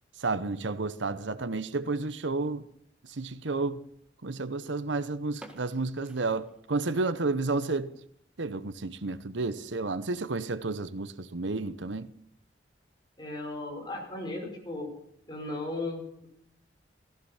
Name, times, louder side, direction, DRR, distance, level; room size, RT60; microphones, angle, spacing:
voice 1, 0.2-2.7 3.1-3.8 4.2-7.9 8.4-12.1, right 3 dB, 90° right, 0.9 m, -31 dB
sound 1, 5.4-7.2 7.5-7.6 8.2-8.3 8.8-8.9 9.1-9.2 10.0-10.3, right 1 dB, 5° right, 1.7 m, -53 dB
voice 2, 13.2-14.9 15.3-16.3, left 2 dB, 25° left, 5.1 m, -36 dB
16.0 x 15.5 x 5.7 m
head